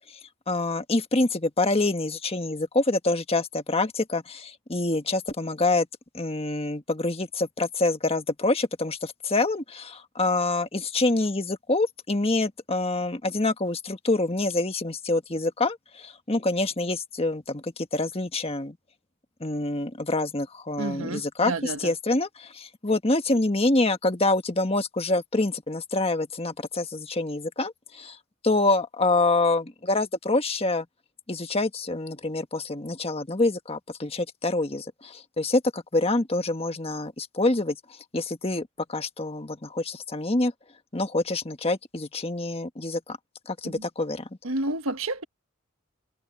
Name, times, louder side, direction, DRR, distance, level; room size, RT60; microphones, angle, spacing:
voice 1, 0.5-5.9 6.1-18.8 19.4-28.2 28.4-30.9 31.3-40.5 40.9-43.2 43.5-44.3, left 2 dB, 30° left, 1.5 m, -26 dB
voice 2, 20.8-21.9 43.6-43.8 44.4-45.2, right 2 dB, 85° right, 1.5 m, -30 dB
head